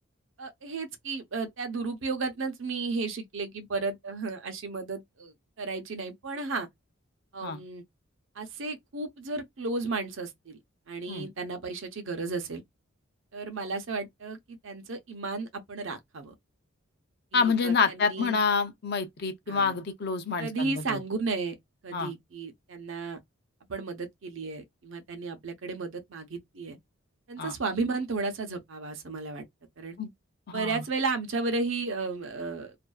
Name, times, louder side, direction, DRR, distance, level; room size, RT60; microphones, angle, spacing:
voice 1, 0.4-6.7 7.3-7.8 8.4-10.6 10.9-12.6 13.3-16.3 17.3-18.4 19.5-19.7 20.4-21.5 21.8-23.2 23.7-26.8 27.3-29.4 29.8-30.0 30.5-32.7, right 3 dB, 65° right, 0.7 m, -33 dB
voice 2, 17.3-21.0 21.9-22.1 27.4-27.5 30.0-30.1 30.5-30.8, left 5 dB, 50° left, 0.5 m, -28 dB
2.5 x 2.2 x 2.3 m
head